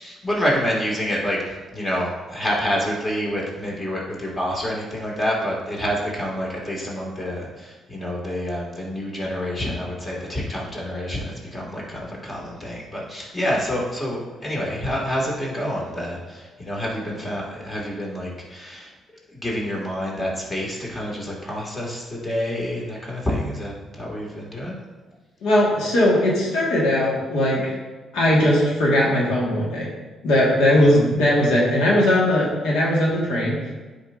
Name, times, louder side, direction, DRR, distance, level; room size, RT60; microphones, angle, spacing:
voice 1, 0.0-18.9 19.3-24.8 30.8-31.0, equal, 25° left, -3 dB, 2.3 m, -28 dB
voice 2, 25.4-27.8 28.1-29.9 30.2-33.6, left 1 dB, 85° left, -4 dB, 1.8 m, -19 dB
10.0 x 5.1 x 2.6 m, 1.3 s
cardioid pair, 90°, 0 cm